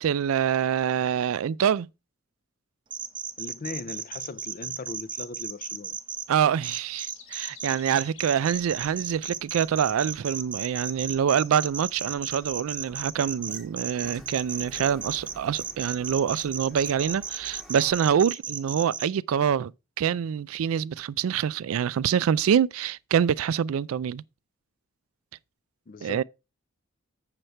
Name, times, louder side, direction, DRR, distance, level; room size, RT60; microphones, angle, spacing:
voice 1, 0.0-1.9 6.3-19.7 20.0-24.2 26.0-26.2, right 8 dB, 80° right, 0.3 m, -25 dB
sound 1, 2.9-6.2 6.6-19.1, right 7 dB, 25° right, 0.7 m, -34 dB
voice 2, 3.4-6.0 25.9-26.2, left 3 dB, 40° left, 0.4 m, -38 dB
sound 2, 4.3-5.0 6.5-8.7, left 8 dB, 70° left, 1.7 m, -50 dB
Sliding door, 8.5-17.9, equal, ahead, 1.0 m, -52 dB
7.9 x 6.6 x 4.3 m
head